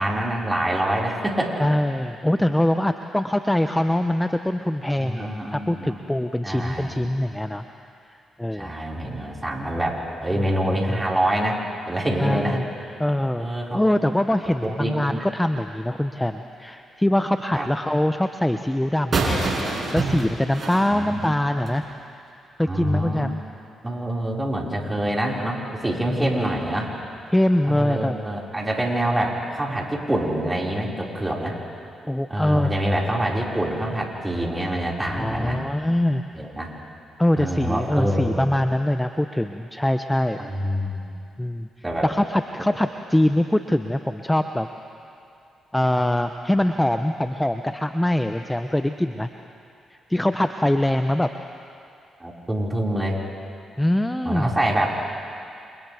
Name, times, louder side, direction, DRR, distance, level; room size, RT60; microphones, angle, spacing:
voice 1, 0.0-1.5 5.0-6.0 6.4-7.1 8.5-11.6 11.9-12.6 12.8-12.9 13.4-13.8 14.6-15.2 17.5-17.7 20.7-21.2 22.7-23.4 23.8-26.9 27.7-31.6 32.3-35.6 36.3-36.7 37.4-38.4 40.4-41.0 41.8-42.1 52.2-53.2 54.2-54.9, right 1 dB, 20° right, -3 dB, 5.5 m, -26 dB
voice 2, 1.6-7.6 8.4-8.7 10.3-10.5 12.2-12.6 13.0-13.5 13.7-19.3 19.9-21.8 22.6-23.4 26.1-26.4 27.3-28.2 32.1-32.7 35.2-36.2 37.2-40.4 41.4-41.7 42.0-44.7 45.7-49.3 49.9-51.3 53.8-54.5, left 1 dB, 10° left, 7 dB, 0.9 m, -23 dB
sound 1, 19.1-21.8, right 3 dB, 50° right, 6.2 m, -26 dB
29.5 x 28.0 x 3.6 m, 2.5 s
hypercardioid pair, 45°, 0 cm